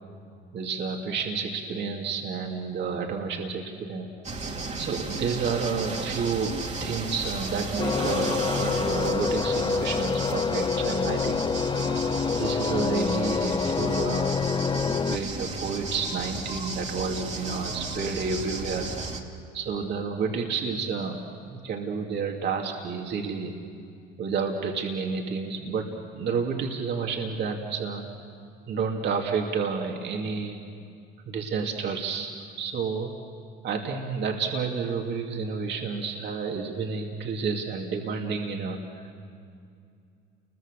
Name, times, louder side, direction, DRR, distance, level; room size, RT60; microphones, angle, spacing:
voice 1, 0.5-4.2 4.8-11.7 12.4-14.4 15.0-19.2 19.5-23.6 24.2-28.0 28.7-30.6 31.3-32.3 32.6-33.1 33.6-39.0, right 5 dB, 55° right, 1 dB, 2.7 m, -30 dB
sound 1, 4.2-19.2, right 3 dB, 35° right, 2.6 m, -34 dB
sound 2, 7.8-15.2, left 6 dB, 20° left, 0.5 m, -27 dB
29.5 x 22.0 x 6.7 m, 2.4 s
supercardioid pair, 85°, 21 cm